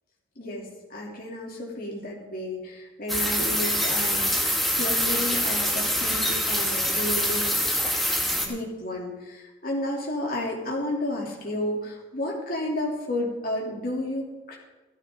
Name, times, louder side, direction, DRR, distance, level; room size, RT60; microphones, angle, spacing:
voice 1, 0.4-7.6 8.4-14.6, left 1 dB, 50° left, -2 dB, 3.2 m, -32 dB
sound 1, 3.1-8.5, equal, ahead, 1.5 m, -25 dB
13.5 x 13.5 x 3.9 m, 1.2 s
head